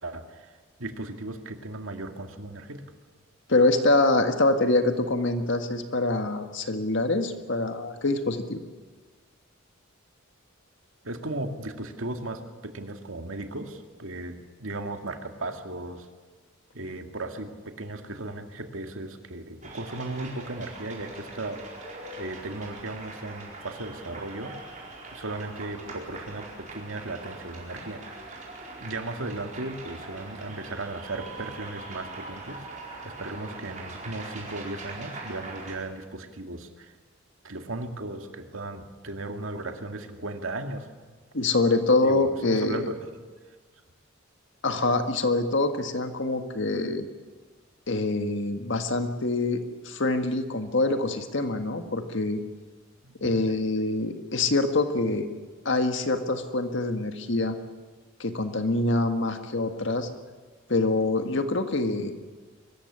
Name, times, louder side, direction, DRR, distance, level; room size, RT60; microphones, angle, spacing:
voice 1, 0.0-2.8 11.0-16.1 16.7-21.6 22.2-24.6 25.1-28.1 28.8-32.7 33.0-36.9 37.4-40.9 42.0-43.0 53.0-53.4, right 2 dB, 75° right, 5 dB, 2.1 m, -36 dB
voice 2, 3.5-8.6 41.3-42.9 44.6-47.1 47.9-52.4 53.2-55.3 55.7-57.6 58.2-60.1 60.7-62.1, left 2 dB, 60° left, 7 dB, 1.7 m, -25 dB
sound 1, 19.6-35.8, right 3 dB, 35° right, 4.6 m, -42 dB
23.5 x 14.5 x 9.9 m, 1.4 s
head